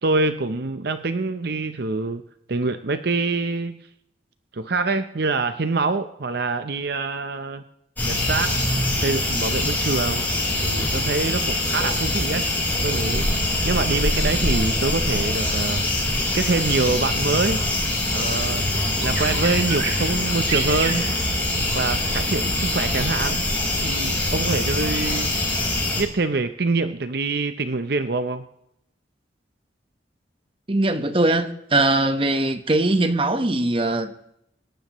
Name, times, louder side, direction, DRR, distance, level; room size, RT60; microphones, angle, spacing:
voice 1, 0.0-2.2 2.5-3.8 4.5-7.6 8.0-8.6 9.0-10.3 10.6-12.5 12.8-13.3 13.6-17.6 18.1-18.7 19.0-21.1 21.7-23.4 23.8-25.4 25.9-28.4, right 3 dB, 55° right, 0.7 m, -25 dB
Dewe at Night, 8.0-26.0, left 1 dB, 10° left, 4.8 m, -23 dB
Bird vocalization bird call bird song, 16.2-21.7, right 5 dB, 80° right, 2.4 m, -33 dB
voice 2, 30.7-34.1, right 2 dB, 30° right, 1.1 m, -21 dB
25.5 x 12.0 x 3.1 m
head